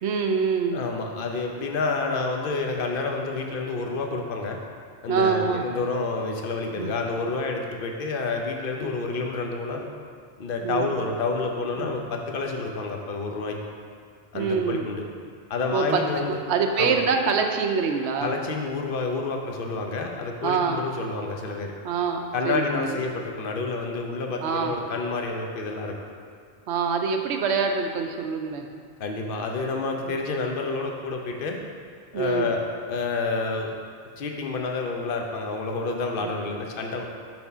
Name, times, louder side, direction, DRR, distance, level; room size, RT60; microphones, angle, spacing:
voice 1, 0.0-0.9 5.1-5.7 6.8-6.9 8.8-8.9 10.6-10.9 11.8-11.9 14.3-14.9 15.7-18.3 20.4-20.9 21.8-23.0 24.4-24.8 26.7-28.7 30.1-30.2 32.1-32.5 36.2-36.3, right 5 dB, 80° right, 4 dB, 0.9 m, -25 dB
voice 2, 0.7-4.6 5.0-9.9 10.4-13.6 14.3-15.0 15.5-16.4 16.8-17.0 18.2-21.7 22.3-25.9 29.0-31.6 32.1-32.6 32.9-33.7 34.2-37.1, left 3 dB, 55° left, 2 dB, 0.8 m, -29 dB
6.0 x 3.6 x 5.5 m, 2.2 s
omnidirectional pair, 1.1 m